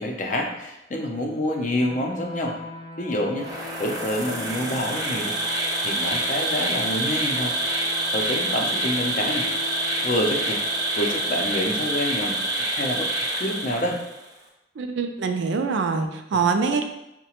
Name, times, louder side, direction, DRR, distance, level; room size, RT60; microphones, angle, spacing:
voice 1, 0.0-2.6 3.0-3.5 3.8-5.4 5.8-7.5 8.1-9.5 10.0-10.6 11.0-12.4 12.7-13.1 13.4-14.0, left 1 dB, 45° left, 1 dB, 0.5 m, -27 dB
sound 1, 1.8-11.4, left 4 dB, 20° left, 0.9 m, -40 dB
Insect, 3.4-14.2, right 1 dB, 20° right, 0.6 m, -27 dB
voice 2, 14.8-16.8, right 5 dB, 75° right, 6 dB, 0.4 m, -24 dB
4.7 x 2.1 x 2.9 m, 0.90 s
head